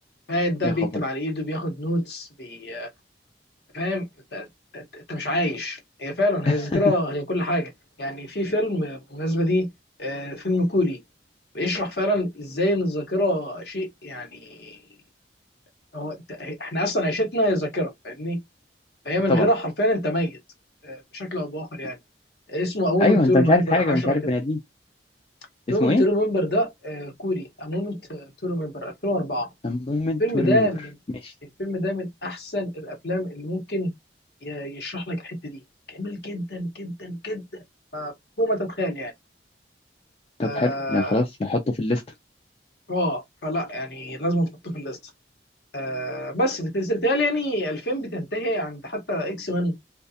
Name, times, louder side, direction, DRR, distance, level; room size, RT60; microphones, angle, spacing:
voice 1, 0.3-2.9 3.7-4.1 4.3-4.4 4.7-7.7 8.0-9.7 10.0-11.0 11.5-14.8 15.9-18.4 19.0-20.4 20.8-22.0 22.5-24.2 25.7-29.5 30.2-30.9 31.6-33.9 34.4-35.6 35.9-37.4 37.9-38.1 38.4-39.1 40.4-41.2 42.9-45.0 45.7-49.7, left 1 dB, 65° left, 1.0 m, -26 dB
voice 2, 6.5-6.8 19.3-19.5 23.0-24.6 25.8-26.0 29.6-30.7 31.2-31.3 40.4-42.0, left 2 dB, 35° left, 0.4 m, -22 dB
2.3 x 2.3 x 2.6 m
head